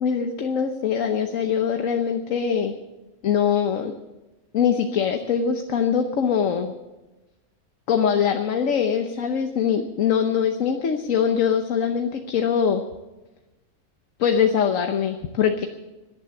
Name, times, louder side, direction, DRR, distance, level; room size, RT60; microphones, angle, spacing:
voice 1, 0.0-2.7 3.2-3.9 4.5-6.7 7.9-12.8 14.2-15.7, left 7 dB, 85° left, 6 dB, 1.3 m, -22 dB
17.0 x 10.5 x 7.0 m, 1.1 s
omnidirectional pair, 1.3 m